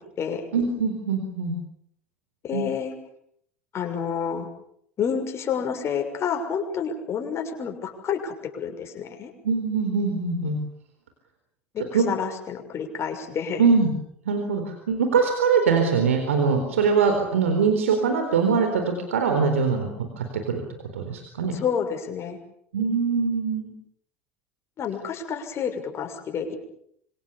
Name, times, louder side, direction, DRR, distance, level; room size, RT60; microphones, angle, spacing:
voice 1, 0.5-1.6 2.5-2.7 9.4-10.6 11.9-12.0 13.6-13.9 14.3-19.9 20.2-20.6 20.9-21.5 22.7-23.7, right 5 dB, 75° right, 5 dB, 4.1 m, -22 dB
voice 2, 2.4-2.9 3.7-4.5 5.0-9.3 11.7-13.6 21.5-22.4 24.8-26.6, left 7 dB, 40° left, 4 dB, 6.4 m, -29 dB
26.5 x 25.5 x 7.2 m, 0.70 s
figure-of-eight pair, 70°, 7 cm